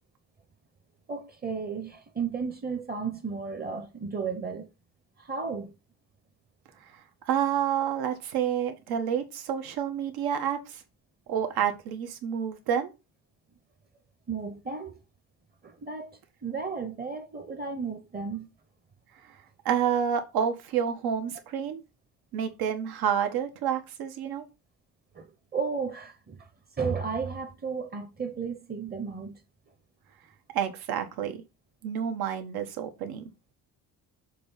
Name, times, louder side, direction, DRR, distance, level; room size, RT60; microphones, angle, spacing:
voice 1, 1.1-4.7 5.2-5.7 14.3-15.0 15.6-18.5 25.1-26.4 26.8-29.4, right 5 dB, 25° right, 0.9 m, -34 dB
voice 2, 6.9-10.8 11.3-12.9 19.2-19.4 19.6-21.8 22.3-24.4 30.5-31.4 31.8-33.3, right 8 dB, 80° right, 1.4 m, -29 dB
6.7 x 3.2 x 5.6 m
cardioid pair, 140°, 37 cm